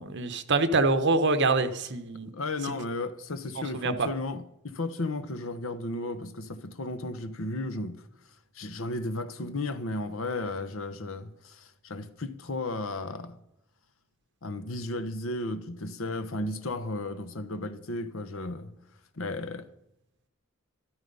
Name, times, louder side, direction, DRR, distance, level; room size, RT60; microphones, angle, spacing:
voice 1, 0.0-2.3 2.6-2.7 3.6-4.1, right 3 dB, 55° right, 1.1 m, -25 dB
voice 2, 2.3-8.0 8.5-13.4 14.4-18.7 19.2-19.7, left 2 dB, 70° left, 1.1 m, -34 dB
13.0 x 12.5 x 5.5 m
head